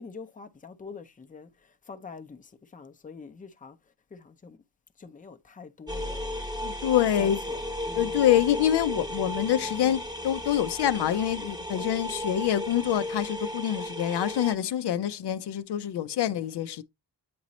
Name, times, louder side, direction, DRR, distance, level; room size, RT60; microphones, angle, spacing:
voice 1, 0.0-4.6 5.0-6.2 7.1-8.4 11.8-12.0, left 5 dB, 20° left, 0.6 m, -45 dB
sound 1, 5.9-14.5, left 1 dB, 10° right, 0.9 m, -35 dB
voice 2, 6.6-7.4 7.9-16.8, left 11 dB, 70° left, 0.6 m, -26 dB
8.5 x 2.9 x 4.1 m
wide cardioid pair, 115°, 42 cm